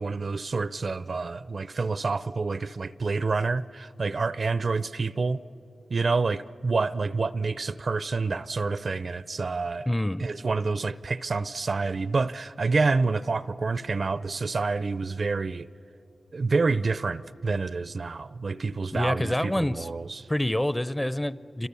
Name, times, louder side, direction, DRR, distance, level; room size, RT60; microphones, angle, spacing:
voice 1, 0.0-5.4 5.9-9.9 10.2-15.7 16.3-20.3, right 4 dB, 60° right, 0.5 m, -28 dB
voice 2, 9.9-10.3 18.9-19.9 20.3-21.7, left 1 dB, 15° left, 0.6 m, -27 dB
28.5 x 26.5 x 7.0 m
cardioid pair, 60°, 0 cm